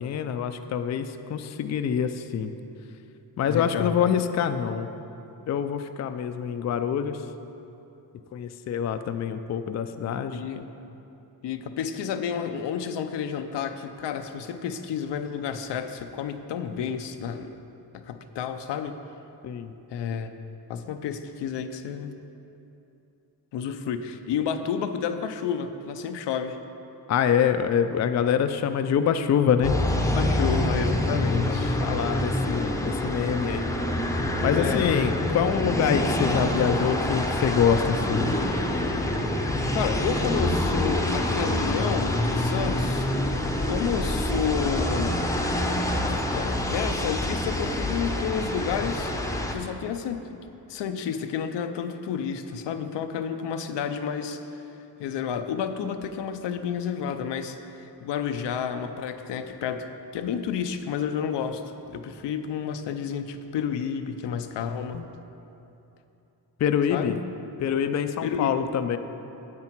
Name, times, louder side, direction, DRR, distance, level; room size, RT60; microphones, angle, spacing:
voice 1, 0.0-2.5 3.4-4.9 5.5-7.2 8.3-10.6 19.4-19.7 27.1-29.7 31.4-33.7 34.4-38.3 64.9-65.0 66.6-67.2 67.6-69.0, left 8 dB, 40° left, 9 dB, 0.4 m, -25 dB
voice 2, 3.5-4.0 10.3-10.6 11.4-17.5 17.9-19.0 19.9-20.3 20.7-22.1 23.5-26.6 30.2-31.8 34.5-35.0 39.7-43.1 43.6-45.3 46.3-49.1 49.5-50.4 50.7-54.4 55.0-65.0 66.9-67.2 68.2-68.6, left 7 dB, 85° left, 8 dB, 0.6 m, -30 dB
sound 1, 29.6-49.5, left 1 dB, 10° left, 0.7 m, -26 dB
9.6 x 7.6 x 4.5 m, 2.9 s
cardioid pair, 105°, 41 cm